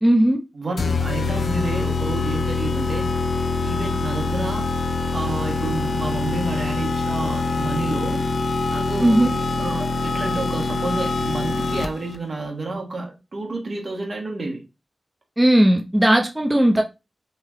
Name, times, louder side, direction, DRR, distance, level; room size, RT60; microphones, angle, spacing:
voice 1, 0.0-0.4 9.0-9.3 15.4-16.8, right 1 dB, 15° right, 0.6 m, -16 dB
voice 2, 0.5-3.1 3.6-4.7 5.1-8.2 8.7-9.2 9.6-14.6, right 3 dB, 60° right, 1.3 m, -30 dB
sound 1, 0.8-12.2, left 3 dB, 80° left, 0.3 m, -24 dB
3.2 x 3.0 x 3.6 m
cardioid pair, 50°, 0 cm